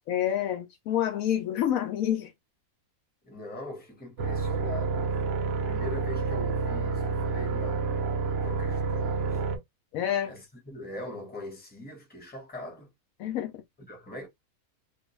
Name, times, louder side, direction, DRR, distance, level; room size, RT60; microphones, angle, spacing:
voice 1, 0.1-2.3 9.9-10.3 13.2-13.5, left 10 dB, 75° left, 1.0 m, -28 dB
voice 2, 3.2-5.2 5.6-7.9 8.2-9.4 10.3-12.9 13.9-14.3, left 1 dB, 10° left, 0.9 m, -41 dB
sound 1, 4.2-9.6, right 4 dB, 65° right, 0.7 m, -29 dB
2.4 x 2.3 x 3.0 m
omnidirectional pair, 1.5 m